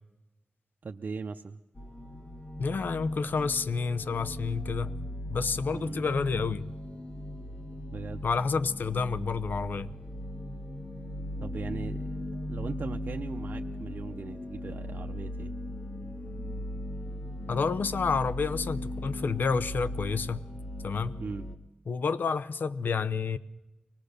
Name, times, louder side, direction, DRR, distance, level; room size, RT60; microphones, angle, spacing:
voice 1, 0.8-1.6 5.7-6.1 7.9-8.2 11.4-15.5 21.2-21.5, right 4 dB, 70° right, 3 dB, 0.7 m, -39 dB
sound 1, 1.8-21.6, left 1 dB, 45° left, 2.1 m, -38 dB
voice 2, 2.6-4.9 5.3-6.7 8.2-9.9 17.5-20.4 20.8-21.1 21.9-23.4, left 5 dB, 85° left, 15 dB, 0.8 m, -29 dB
24.0 x 19.0 x 6.6 m, 1.0 s
cardioid pair, 45°, 3 cm